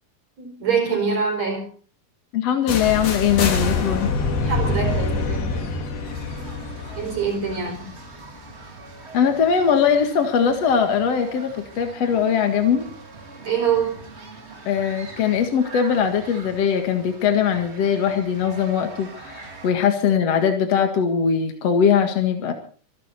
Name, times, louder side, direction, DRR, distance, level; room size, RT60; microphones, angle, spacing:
voice 1, 0.4-1.7 4.5-5.7 7.0-7.9 13.4-14.0, right 6 dB, 45° right, 5.5 m, -24 dB
voice 2, 2.3-4.1 9.1-12.9 14.7-22.5, left 7 dB, 50° left, 2.6 m, -21 dB
sound 1, 2.7-8.5, left 3 dB, 85° left, 4.7 m, -25 dB
sound 2, 6.0-19.7, right 3 dB, 20° right, 2.0 m, -42 dB
25.5 x 12.0 x 4.3 m
omnidirectional pair, 4.1 m